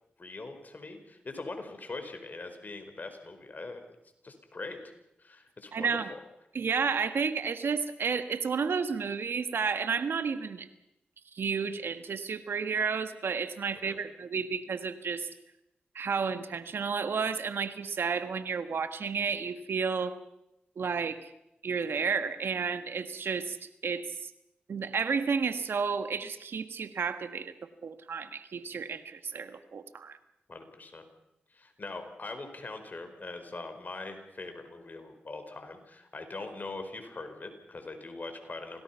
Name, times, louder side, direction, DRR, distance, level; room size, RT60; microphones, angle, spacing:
voice 1, 0.2-3.9 4.2-4.8 5.2-6.0 13.8-14.0 30.5-31.0 31.5-38.8, left 3 dB, 50° left, 7 dB, 4.7 m, -42 dB
voice 2, 5.7-6.1 6.5-10.7 11.3-15.3 15.9-20.2 20.8-21.3 21.6-24.3 24.7-27.5 27.8-30.2, right 5 dB, 75° right, 10 dB, 1.6 m, -31 dB
27.0 x 18.0 x 5.8 m, 0.85 s
cardioid pair, 45°, 4 cm